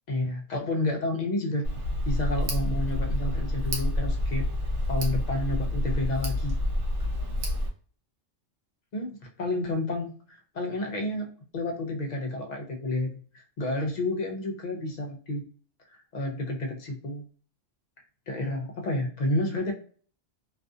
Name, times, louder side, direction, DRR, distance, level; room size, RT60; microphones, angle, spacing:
voice 1, 0.1-1.7 2.1-4.5 4.9-6.6 8.9-15.4 15.9-17.2 18.3-19.7, left 1 dB, 55° left, 1 dB, 0.5 m, -30 dB
Tick, 1.6-7.7, left 1 dB, 65° right, 1.1 m, -28 dB
2.6 x 2.4 x 2.3 m, 0.43 s
omnidirectional pair, 1.3 m